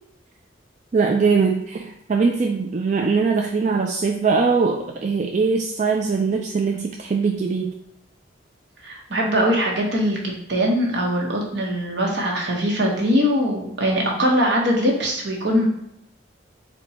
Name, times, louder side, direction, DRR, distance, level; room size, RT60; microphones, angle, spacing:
voice 1, 0.9-7.7, right 4 dB, 40° right, 1 dB, 0.3 m, -21 dB
voice 2, 8.8-15.7, equal, 70° right, -1 dB, 1.1 m, -21 dB
4.3 x 2.2 x 4.1 m, 0.78 s
head